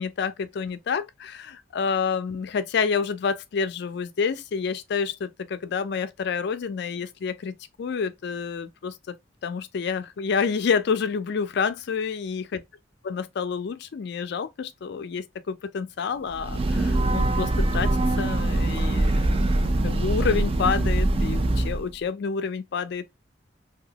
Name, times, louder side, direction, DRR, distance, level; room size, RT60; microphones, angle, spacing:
voice 1, 0.0-9.2 9.4-12.6 13.0-17.9 18.2-19.4 19.6-23.1, left 6 dB, 65° left, 0.4 m, -28 dB
Breathing / Train, 16.3-21.9, right 2 dB, 30° right, 0.4 m, -23 dB
2.8 x 2.2 x 2.8 m
head